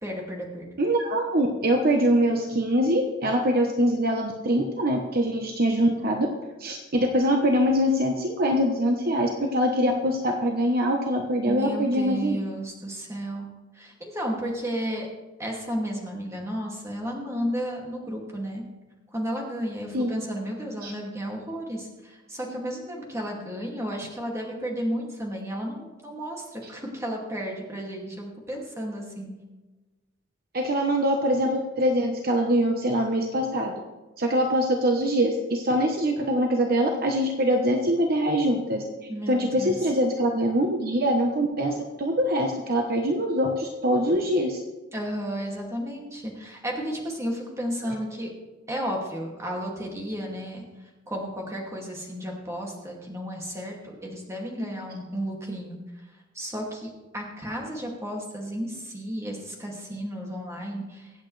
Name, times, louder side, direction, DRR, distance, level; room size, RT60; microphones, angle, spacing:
voice 1, 0.0-0.7 11.4-13.5 13.7-15.1 15.4-18.6 19.1-29.3 39.1-39.8 44.9-48.3 48.7-50.6 51.1-55.8 56.3-61.1, equal, 15° right, -1 dB, 2.4 m, -33 dB
voice 2, 0.8-6.3 6.6-12.4 19.9-20.2 20.8-20.9 30.5-33.7 34.2-38.8 39.3-44.6, equal, 50° right, 2 dB, 1.0 m, -23 dB
23.5 x 8.4 x 3.3 m, 1.2 s
head